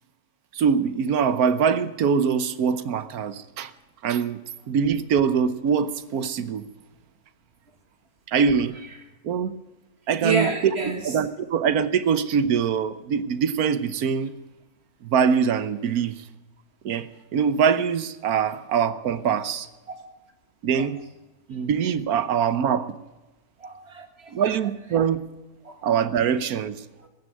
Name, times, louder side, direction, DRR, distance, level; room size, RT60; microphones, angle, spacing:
voice 1, 0.5-3.7 4.0-4.4 4.7-6.6 8.3-8.8 9.2-9.5 10.1-10.5 11.0-14.3 15.0-16.2 16.8-19.7 20.6-21.0 21.5-22.9 24.3-25.2 25.8-26.8, right 7 dB, 75° right, 1.4 m, -23 dB
voice 2, 10.2-11.1 20.8-20.9 23.6-24.3 25.6-25.8 27.0-27.1, right 4 dB, 45° right, 1.8 m, -28 dB
15.0 x 9.6 x 9.3 m
omnidirectional pair, 1.6 m